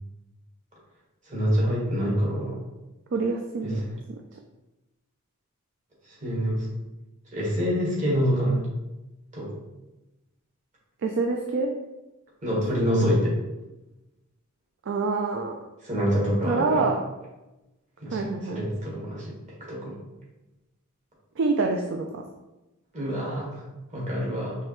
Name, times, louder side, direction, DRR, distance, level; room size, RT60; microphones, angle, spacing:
voice 1, 1.3-2.6 3.6-3.9 6.1-6.7 7.3-8.7 9.3-9.5 12.4-13.4 15.8-16.8 18.0-20.0 22.9-23.6 23.9-24.6, equal, 35° right, -5 dB, 1.5 m, -26 dB
voice 2, 3.1-3.8 11.0-11.7 14.9-15.6 16.5-17.0 18.1-18.6 21.4-22.2, right 3 dB, 60° right, 3 dB, 0.4 m, -26 dB
4.8 x 3.2 x 3.1 m, 1.0 s
head